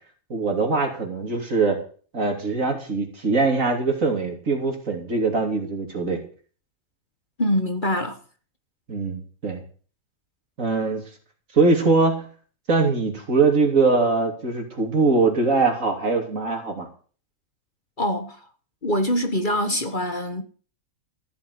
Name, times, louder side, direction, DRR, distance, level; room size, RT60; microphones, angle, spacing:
voice 1, 0.3-1.8 2.1-6.2 8.9-9.6 10.6-11.0 11.5-12.2 12.7-16.9, right 3 dB, 60° right, 3.4 m, -22 dB
voice 2, 7.4-8.2 18.0-18.4 18.8-20.4, equal, 35° left, 1.6 m, -24 dB
15.0 x 7.1 x 8.1 m
omnidirectional pair, 1.5 m